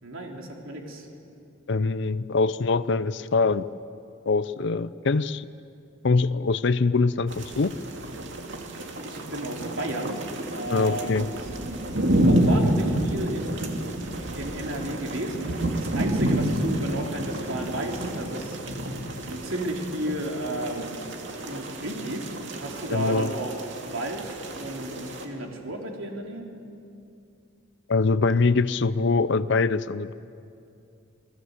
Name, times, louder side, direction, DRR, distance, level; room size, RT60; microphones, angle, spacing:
voice 1, 0.0-1.1 9.0-10.2 10.5-11.3 12.2-13.7 14.3-18.6 19.2-21.0 21.4-23.5 23.9-26.5, right 1 dB, 85° right, 1 dB, 3.5 m, -33 dB
voice 2, 1.7-3.7 4.3-5.4 6.0-7.7 10.7-11.3 22.9-23.3 27.9-30.1, left 4 dB, 60° left, 14 dB, 0.6 m, -23 dB
sound 1, 7.3-25.3, right 1 dB, 65° right, 2.6 m, -29 dB
29.0 x 19.5 x 8.2 m, 2.6 s
head